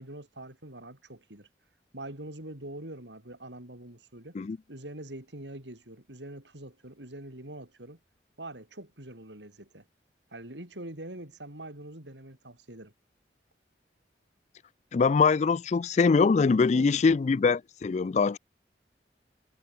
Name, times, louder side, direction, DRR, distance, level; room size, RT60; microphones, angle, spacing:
voice 1, 0.0-1.5 1.9-4.4 4.7-8.0 8.4-9.9 10.3-12.9 16.7-17.1, right 1 dB, 90° right, 5.5 m, -44 dB
voice 2, 14.9-18.4, left 4 dB, 40° left, 0.4 m, -23 dB
head